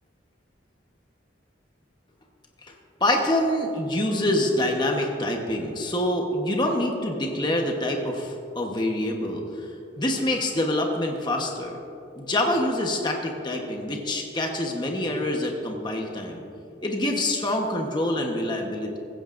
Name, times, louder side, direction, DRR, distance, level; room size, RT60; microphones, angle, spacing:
voice 1, 3.0-9.7 10.0-11.8 12.1-16.4 16.8-19.0, left 1 dB, 25° left, 1 dB, 1.1 m, -26 dB
16.0 x 15.5 x 2.6 m, 2.7 s
head